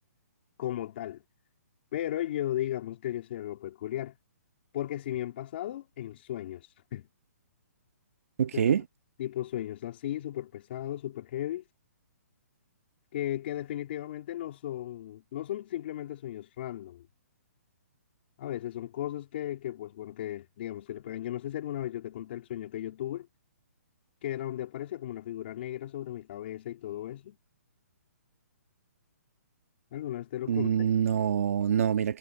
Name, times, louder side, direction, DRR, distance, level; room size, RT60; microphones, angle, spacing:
voice 1, 0.6-1.2 1.9-4.1 4.7-7.0 9.2-11.6 13.1-17.0 18.4-23.3 24.2-27.4 29.9-30.7, left 12 dB, 40° left, 2.8 m, -35 dB
voice 2, 8.4-8.8 30.5-32.2, right 8 dB, 60° right, 1.6 m, -25 dB
hypercardioid pair, 160°, 9 cm